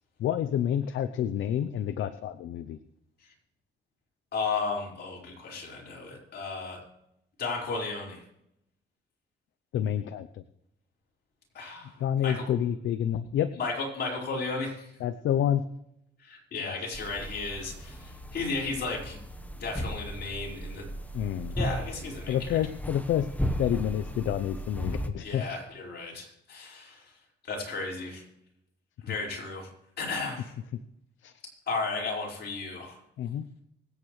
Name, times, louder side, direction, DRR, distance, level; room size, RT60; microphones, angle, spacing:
voice 1, 0.2-2.8 9.7-10.4 12.0-13.5 15.0-15.7 21.1-21.6 22.3-23.3 23.6-25.4 31.2-31.3 33.2-33.5, left 10 dB, 75° left, 12 dB, 0.7 m, -28 dB
voice 2, 4.3-6.8 7.4-8.2 11.5-12.5 13.6-14.9 16.2-19.2 19.6-20.8 21.5-22.6 25.2-27.1 27.4-28.2 29.0-29.7 30.0-30.5 31.7-33.0, left 3 dB, 55° left, -2 dB, 5.2 m, -34 dB
sound 1, 16.9-25.1, equal, 10° left, 1.1 m, -36 dB
24.5 x 9.0 x 3.2 m, 0.79 s
cardioid pair, 90°, 20 cm